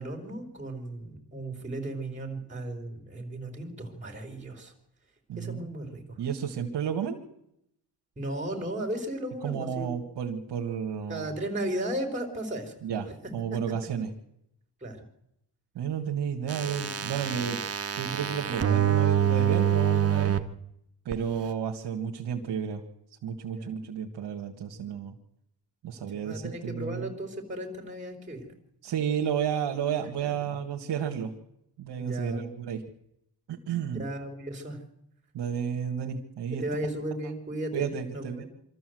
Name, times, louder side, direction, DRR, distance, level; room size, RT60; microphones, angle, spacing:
voice 1, 0.0-4.7 5.3-6.2 8.2-9.9 11.1-12.8 13.5-13.6 14.8-15.0 23.4-23.7 26.1-28.5 30.2-30.3 32.0-32.5 34.0-34.8 36.5-38.5, right 1 dB, 15° right, 3 dB, 4.2 m, -35 dB
voice 2, 5.3-5.7 6.2-7.2 9.4-11.3 12.8-14.1 15.8-17.6 17.9-20.4 21.1-22.8 23.2-25.1 25.8-27.1 28.8-31.3 31.8-32.8 33.5-34.0 35.3-36.6 37.7-38.5, right 8 dB, 70° right, 0 dB, 2.1 m, -32 dB
sound 1, 16.5-20.4 21.1-21.2, right 9 dB, 35° right, 1.3 m, -26 dB
25.0 x 13.5 x 7.9 m, 0.80 s
cardioid pair, 110°, 42 cm